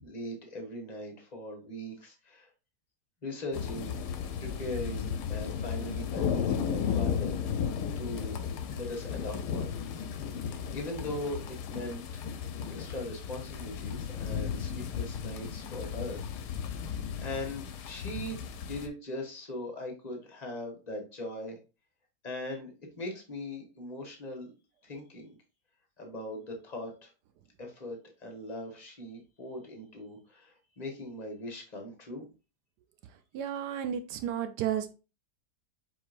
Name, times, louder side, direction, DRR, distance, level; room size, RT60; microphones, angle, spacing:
voice 1, 0.0-2.5 3.2-4.0 4.4-8.4 8.7-9.7 10.3-12.4 12.7-16.3 16.6-16.9 17.1-21.6 22.2-22.7 23.0-24.5 24.8-25.3 26.0-27.1 27.6-32.3, left 1 dB, 25° left, 3 dB, 1.2 m, -40 dB
sound 1, 3.5-18.9, left 7 dB, 80° left, 1.2 m, -34 dB
voice 2, 33.3-34.9, right 9 dB, 80° right, 9 dB, 1.2 m, -32 dB
4.8 x 4.3 x 2.5 m, 0.32 s
omnidirectional pair, 1.8 m